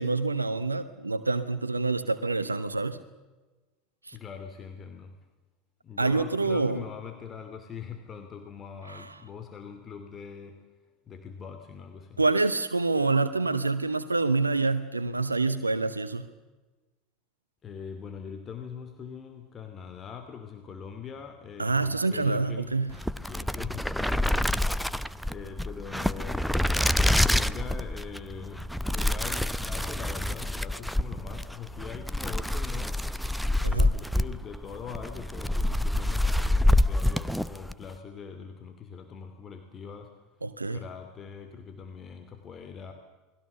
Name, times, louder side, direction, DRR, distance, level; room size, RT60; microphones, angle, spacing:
voice 1, 0.0-3.0 4.1-4.2 6.0-6.8 8.9-9.0 12.2-16.3 21.6-22.9 33.6-33.9 40.4-40.8, right 3 dB, 85° right, 13 dB, 0.9 m, -27 dB
voice 2, 4.1-5.1 5.8-10.6 11.1-12.2 17.6-22.7 23.1-28.7 28.9-33.1 33.6-40.2 40.6-42.9, left 6 dB, 30° left, 6 dB, 2.7 m, -42 dB
sound 1, 22.9-37.8, left 1 dB, ahead, 0.8 m, -27 dB
29.0 x 21.0 x 6.8 m, 1.2 s
figure-of-eight pair, 75°, 0 cm